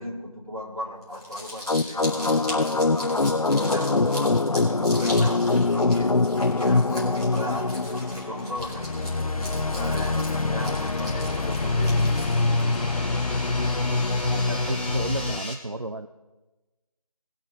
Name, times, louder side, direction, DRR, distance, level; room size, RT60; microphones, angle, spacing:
voice 1, 0.0-2.8 3.4-6.1 6.6-9.2 9.7-12.3, equal, 65° right, -4 dB, 4.2 m, -36 dB
Crumpling crinkling, 1.0-12.8, left 1 dB, 5° right, 1.8 m, -39 dB
sound 1, 1.7-15.4, left 3 dB, 65° left, 0.6 m, -24 dB
sound 2, 5.5-15.5, left 1 dB, 15° left, 1.3 m, -40 dB
voice 2, 14.3-16.1, right 2 dB, 50° right, 10 dB, 0.5 m, -32 dB
20.5 x 7.2 x 3.7 m, 1.1 s
figure-of-eight pair, 170°, 19 cm